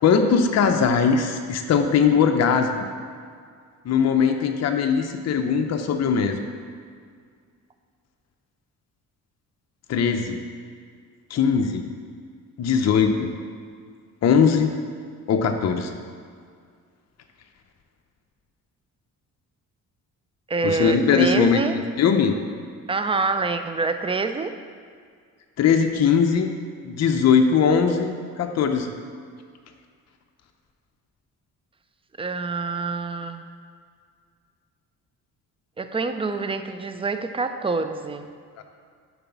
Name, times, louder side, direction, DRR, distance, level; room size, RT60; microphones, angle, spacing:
voice 1, 0.0-2.7 3.9-6.4 9.9-10.4 11.3-11.9 12.6-13.3 14.2-14.7 15.3-15.9 20.6-21.6 22.0-22.4 25.6-26.5 26.8-28.9 38.6-38.7, left 6 dB, 50° left, 5 dB, 0.6 m, -20 dB
voice 2, 20.5-21.8 22.9-24.5 32.2-33.4 35.8-38.3, right 4 dB, 15° right, 8 dB, 0.4 m, -26 dB
5.1 x 4.1 x 5.8 m, 2.1 s
cardioid pair, 70°, 35 cm